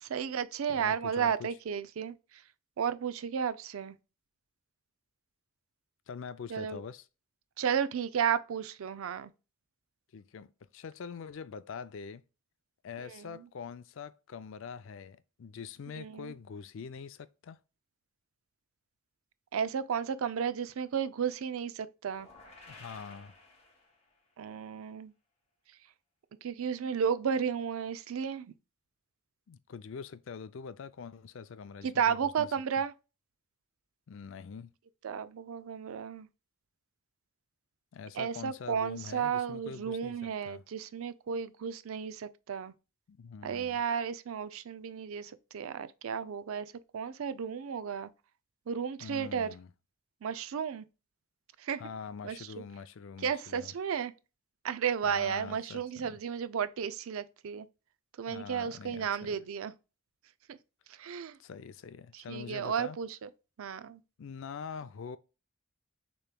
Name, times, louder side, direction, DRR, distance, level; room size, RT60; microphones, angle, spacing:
voice 1, 0.0-2.2 2.8-4.0 6.5-6.8 7.6-9.3 13.1-13.3 15.9-16.3 19.5-22.3 24.4-25.1 26.4-28.5 31.8-32.9 35.0-36.3 38.2-42.7 43.4-46.7 46.9-48.1 48.7-49.5 50.2-50.8 51.6-51.8 52.2-52.5 53.2-54.1 54.6-57.7 58.2-59.7 61.0-61.4 62.3-63.1 63.6-64.0, right 7 dB, 75° right, 0.4 m, -33 dB
voice 2, 0.7-1.5 6.1-7.1 10.1-12.2 12.8-17.6 22.7-23.3 29.5-32.5 34.1-34.7 37.9-40.6 43.1-43.8 49.0-49.7 51.8-53.7 55.0-56.2 58.3-59.4 61.4-63.0 64.2-65.2, left 6 dB, 60° left, 0.4 m, -44 dB
sound 1, 22.1-24.3, left 2 dB, 30° left, 1.4 m, -54 dB
6.5 x 3.0 x 2.2 m
head